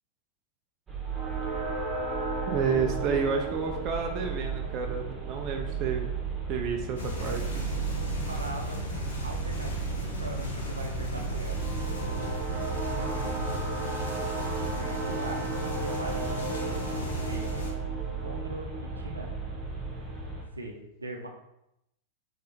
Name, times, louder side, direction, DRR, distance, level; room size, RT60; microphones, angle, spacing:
sound 1, 0.9-20.4, right 4 dB, 20° right, 1.2 m, -34 dB
voice 1, 2.5-6.1 6.5-7.7 12.0-12.4, right 5 dB, 40° right, 4 dB, 0.5 m, -30 dB
sound 2, 7.0-17.7, left 1 dB, 65° left, 1.0 m, -35 dB
voice 2, 7.7-8.8 9.2-11.7 13.0-13.5 14.5-15.5 15.8-16.5 17.2-17.5 18.2-19.4 20.5-21.3, right 2 dB, 80° right, 2 dB, 0.6 m, -41 dB
3.6 x 3.2 x 4.1 m, 0.84 s
figure-of-eight pair, 90°, 0 cm